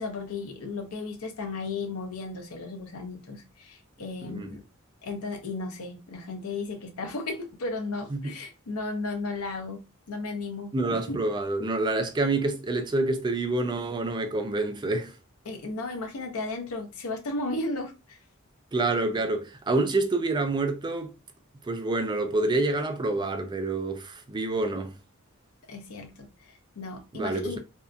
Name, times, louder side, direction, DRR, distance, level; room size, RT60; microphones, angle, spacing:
voice 1, 0.0-4.6 5.0-11.2 15.4-18.2 25.7-27.6, left 3 dB, 90° left, 0.7 m, -35 dB
voice 2, 4.2-4.5 8.1-8.3 10.7-15.1 18.7-21.1 21.6-24.9 27.1-27.6, right 2 dB, 20° right, 0.3 m, -27 dB
2.7 x 2.2 x 2.4 m
head